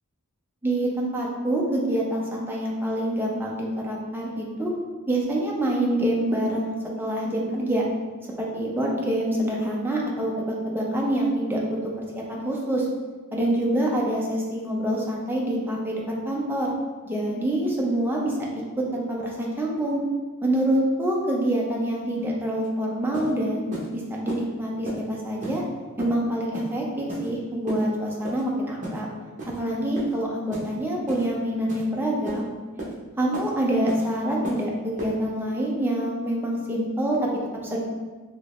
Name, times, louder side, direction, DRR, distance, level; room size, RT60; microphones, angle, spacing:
voice 1, 0.6-4.7 5.1-7.8 8.4-11.6 12.1-12.9 13.3-16.7 17.1-18.4 18.8-20.0 20.4-25.6 26.0-29.1 29.5-32.5 33.2-37.2 37.6-37.8, right 1 dB, 10° right, -3 dB, 0.4 m, -26 dB
sound 1, 22.6-22.7 23.1-23.3 23.7-23.9 24.3-24.4 24.8-25.0 25.4-25.6 26.0-26.1 26.5-26.7 27.1-27.3 27.7-27.8 28.2-28.4 28.8-29.0 29.4-29.6 30.0-30.1 30.5-30.7 31.1-31.2 31.7-31.8 32.3-32.4 32.8-32.9 33.3-33.5 33.9-34.0 34.4-34.6 35.0-35.1, right 1 dB, 35° right, 0.8 m, -33 dB
3.5 x 2.8 x 2.4 m, 1.3 s
head